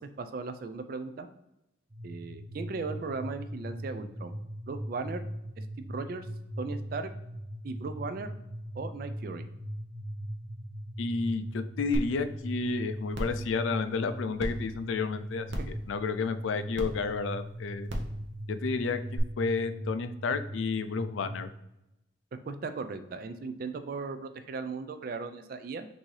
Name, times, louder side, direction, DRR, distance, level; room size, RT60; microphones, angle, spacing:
voice 1, 0.2-1.3 2.0-4.4 4.7-5.2 5.6-6.3 6.6-7.1 7.6-8.3 8.8-9.4 15.5-15.6 22.5-25.9, right 4 dB, 50° right, 9 dB, 0.3 m, -37 dB
sound 1, 1.9-21.5, equal, 25° right, 1.0 m, -40 dB
voice 2, 11.0-15.5 15.9-17.9 18.5-21.5, left 4 dB, 85° left, 10 dB, 0.4 m, -31 dB
sound 2, 11.9-12.0 12.5-12.6 13.1-13.4 14.4-14.5 15.5-15.8 16.7-16.8 17.9-18.1 19.1-19.2, equal, 70° right, 0.8 m, -32 dB
6.0 x 2.7 x 3.2 m, 0.88 s
head